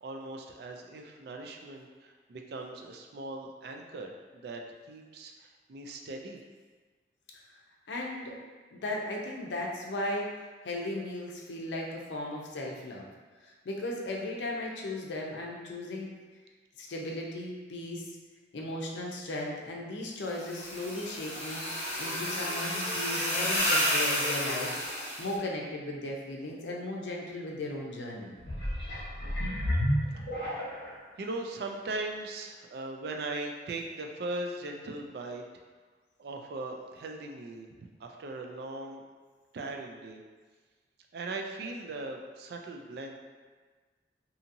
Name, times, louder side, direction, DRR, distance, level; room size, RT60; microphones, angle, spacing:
voice 1, 0.0-4.6 4.9-6.4 30.1-30.6 31.2-35.4 36.2-39.0 39.5-40.2 41.1-43.1, right 2 dB, 60° right, 2 dB, 0.3 m, -39 dB
voice 2, 7.9-8.3 8.7-10.4 10.6-13.1 13.4-16.1 16.8-18.1 18.5-28.4, left 1 dB, 85° left, -1 dB, 0.5 m, -36 dB
sound 1, 20.4-25.3, equal, 35° left, 0.8 m, -31 dB
sound 2, 28.4-31.0 31.6-31.7, equal, 65° left, 0.9 m, -31 dB
2.7 x 2.7 x 2.5 m, 1.4 s
head